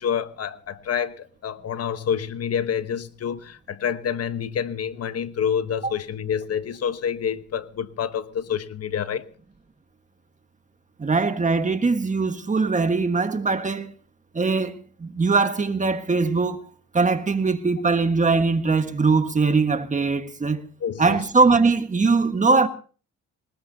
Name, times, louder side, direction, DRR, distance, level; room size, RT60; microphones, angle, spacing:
voice 1, 0.0-9.2 20.8-21.3, left 8 dB, 55° left, 1.2 m, -28 dB
voice 2, 11.0-13.9 14.3-16.6 16.9-20.6 21.0-22.7, right 4 dB, 25° right, 1.5 m, -21 dB
20.0 x 19.5 x 2.8 m
cardioid pair, 90°, 30 cm